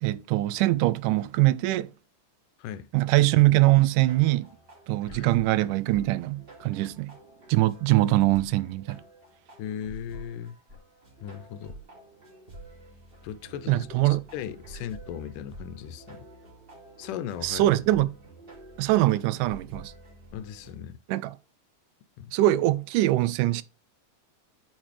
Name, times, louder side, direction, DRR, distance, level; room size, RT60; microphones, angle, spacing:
voice 1, 0.0-1.9 2.9-4.5 4.9-7.1 7.5-9.0 13.7-14.2 17.4-18.1 18.8-19.9 21.1-21.3 22.3-23.6, right 17 dB, 85° right, 2.2 m, -23 dB
sound 1, 3.5-20.7, right 1 dB, 20° right, 2.4 m, -49 dB
voice 2, 9.6-10.6 11.2-11.8 13.2-16.2 17.0-17.8 20.3-21.0 22.2-22.3, left 9 dB, 90° left, 2.3 m, -37 dB
9.0 x 6.0 x 3.2 m
omnidirectional pair, 3.6 m